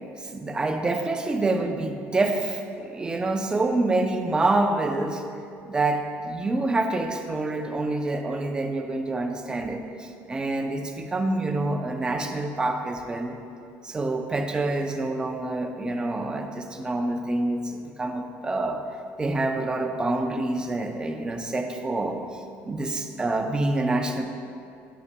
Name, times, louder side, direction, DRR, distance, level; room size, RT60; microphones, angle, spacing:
voice 1, 0.2-5.2 5.6-13.4 13.8-18.8 19.2-24.2, right 2 dB, 15° right, 3 dB, 0.5 m, -27 dB
11.0 x 5.3 x 2.2 m, 2.5 s
cardioid pair, 145°, 6 cm